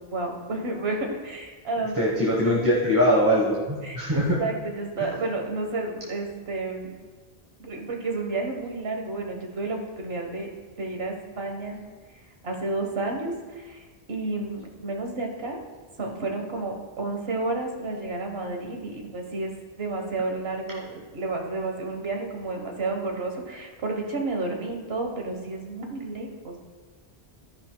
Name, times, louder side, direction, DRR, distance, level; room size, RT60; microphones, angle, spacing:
voice 1, 0.1-2.0 2.4-2.5 3.8-4.0 4.4-6.9 7.6-10.5 10.8-11.8 12.4-15.6 16.0-26.6, right 2 dB, 70° right, 2 dB, 1.5 m, -31 dB
voice 2, 1.9-4.4 5.0-5.1, equal, 20° right, -5 dB, 1.2 m, -22 dB
13.5 x 10.5 x 2.3 m, 1.4 s
omnidirectional pair, 1.1 m